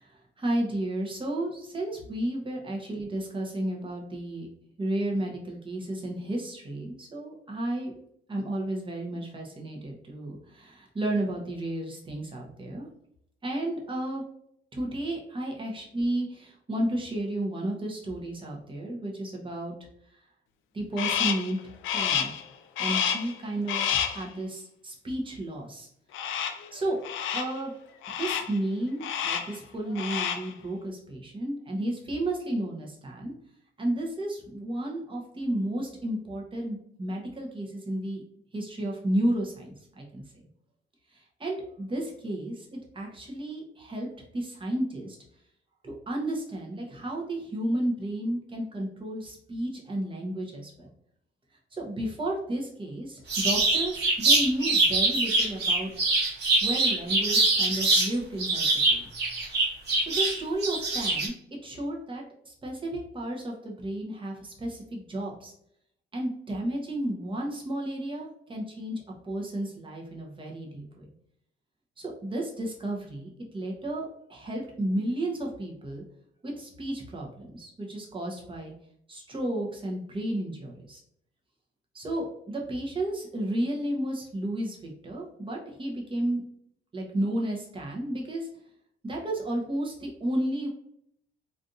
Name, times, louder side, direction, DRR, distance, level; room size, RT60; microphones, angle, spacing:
voice 1, 0.4-4.5 4.8-7.9 8.3-12.9 13.4-14.2 14.7-19.7 20.7-21.6 21.9-22.3 22.8-25.9 26.7-27.0 27.3-27.7 28.1-33.3 33.8-38.2 38.5-40.2 41.4-42.7 42.9-44.1 44.3-45.2 45.8-50.9 51.7-55.9 56.6-59.1 60.1-61.3 61.6-65.5 66.1-71.1 72.0-76.0 76.4-78.7 79.1-81.0 81.9-86.4 86.9-88.5 89.0-90.7, right 1 dB, 25° right, -1 dB, 1.0 m, -32 dB
Crow, 21.0-21.5 21.8-22.4 22.8-23.3 23.7-24.2 26.1-26.7 27.0-27.6 28.0-28.6 29.0-29.6 29.9-30.5, left 8 dB, 80° left, 0.4 m, -29 dB
sound 1, 53.3-58.1 58.4-61.3, right 2 dB, 55° right, 1.2 m, -24 dB
3.3 x 2.6 x 2.5 m, 0.72 s
cardioid pair, 90°, 20 cm